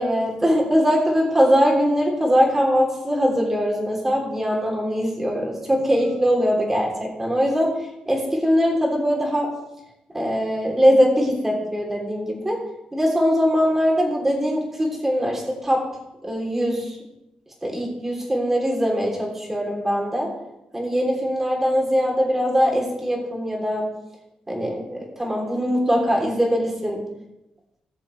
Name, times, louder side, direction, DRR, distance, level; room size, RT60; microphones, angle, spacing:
voice 1, 0.0-7.7 8.1-9.5 10.1-12.6 12.9-15.8 16.2-17.0 17.6-20.3 20.7-23.9 24.5-27.0, equal, 15° right, -1 dB, 3.3 m, -21 dB
18.5 x 7.0 x 3.3 m, 0.90 s
cardioid pair, 115°, 2 cm